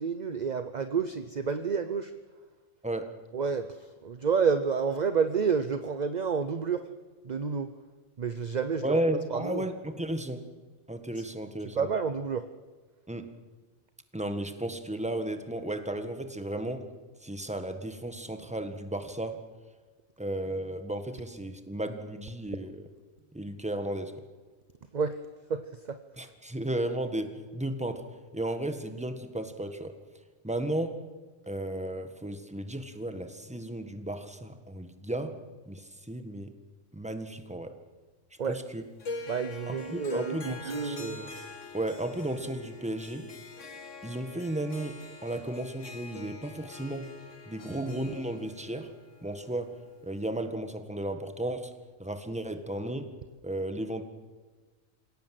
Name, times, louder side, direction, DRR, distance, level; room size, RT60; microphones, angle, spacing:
voice 1, 0.0-2.1 3.3-6.9 7.2-7.7 8.2-9.0 9.3-9.6 11.8-12.5 22.6-22.7 24.9-25.2 25.5-26.0 38.4-38.6 39.3-41.3, right 6 dB, 40° right, 10 dB, 0.8 m, -30 dB
voice 2, 8.8-10.4 10.9-11.9 13.1-13.3 14.1-16.9 17.2-19.4 20.2-22.9 23.3-24.1 26.2-28.0 28.3-29.9 30.4-31.0 31.5-35.3 35.7-36.5 36.9-37.7 38.5-38.8 39.7-41.4 41.7-43.3 44.0-47.1 47.5-48.9 49.2-49.7 50.0-51.7 52.0-53.1 53.4-54.0, right 1 dB, 5° right, 7 dB, 1.5 m, -34 dB
Harp, 39.0-50.3, left 3 dB, 65° left, 2.2 m, -44 dB
27.0 x 17.0 x 7.7 m, 1.4 s
omnidirectional pair, 1.4 m